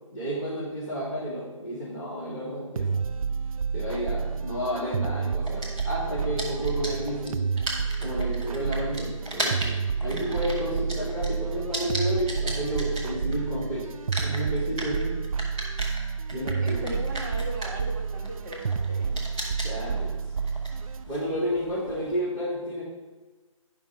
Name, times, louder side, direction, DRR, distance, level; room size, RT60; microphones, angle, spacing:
voice 1, 0.1-3.1 3.7-7.5 8.0-13.9 14.2-15.2 16.3-17.0 19.6-20.2 21.1-22.8, equal, 25° left, -15 dB, 2.8 m, -31 dB
sound 1, 2.8-21.0, right 5 dB, 85° right, 0.4 m, -30 dB
sound 2, 5.5-13.6 13.9-22.2, right 1 dB, 5° right, 0.7 m, -36 dB
voice 2, 10.0-10.4 16.6-19.2, right 1 dB, 35° right, 0 dB, 1.2 m, -38 dB
10.5 x 5.9 x 4.2 m, 1.3 s
hypercardioid pair, 175°, 18 cm